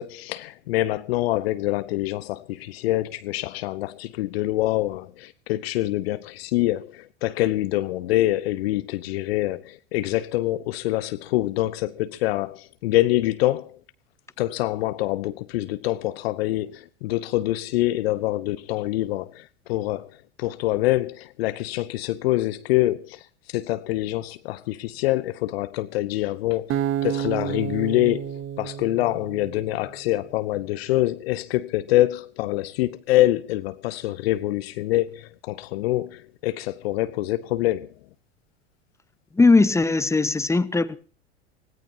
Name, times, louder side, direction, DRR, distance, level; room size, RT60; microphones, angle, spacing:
voice 1, 0.0-13.8 14.4-20.1 20.4-23.2 23.5-37.9, left 16 dB, 60° left, 0.9 m, -25 dB
Acoustic guitar, 26.7-29.9, right 10 dB, 35° right, 1.3 m, -30 dB
voice 2, 39.3-41.0, left 3 dB, 10° left, 1.0 m, -19 dB
24.5 x 17.0 x 2.8 m
figure-of-eight pair, 85°, 35 cm